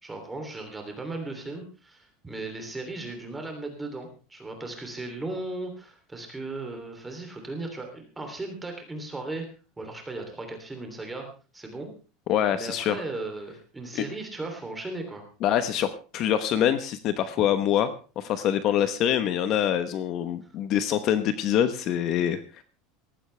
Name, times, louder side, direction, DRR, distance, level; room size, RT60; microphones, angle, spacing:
voice 1, 0.0-9.5 9.8-11.3 11.5-11.9 12.5-15.2, right 2 dB, 10° right, 4 dB, 3.1 m, -36 dB
voice 2, 12.3-13.0 13.9-14.0 15.4-17.9 18.2-22.6, left 10 dB, 35° left, 11 dB, 1.0 m, -25 dB
18.5 x 15.0 x 3.4 m, 0.34 s
supercardioid pair, 170°, 0 cm